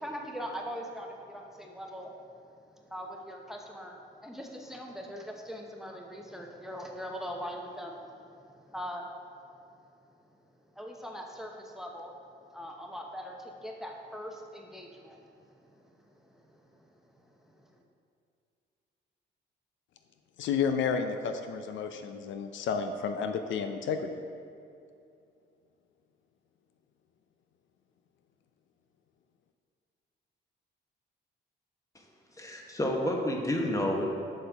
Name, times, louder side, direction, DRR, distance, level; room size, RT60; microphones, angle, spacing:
voice 1, 0.0-9.1 10.8-12.1 12.5-17.8, equal, ahead, 1 dB, 0.7 m, -42 dB
voice 2, 20.4-24.2, left 6 dB, 75° left, 7 dB, 0.5 m, -31 dB
voice 3, 32.4-34.0, left 1 dB, 15° left, 0 dB, 1.2 m, -29 dB
7.8 x 6.4 x 3.5 m, 2.5 s
cardioid pair, 90°, 20 cm